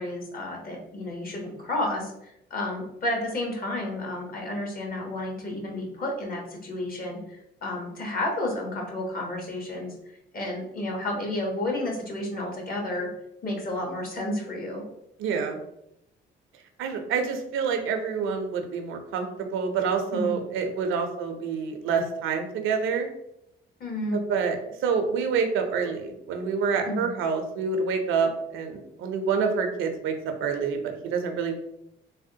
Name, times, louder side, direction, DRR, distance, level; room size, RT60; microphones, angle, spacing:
voice 1, 0.0-9.9 10.3-13.1 13.4-14.8 20.1-20.3 23.8-24.2 26.9-27.1, left 1 dB, 45° left, 0 dB, 0.9 m, -31 dB
voice 2, 15.2-15.6 16.8-23.1 24.1-31.6, right 5 dB, 85° right, 5 dB, 0.5 m, -27 dB
3.3 x 2.1 x 2.7 m, 0.81 s
cardioid pair, 90°, 20 cm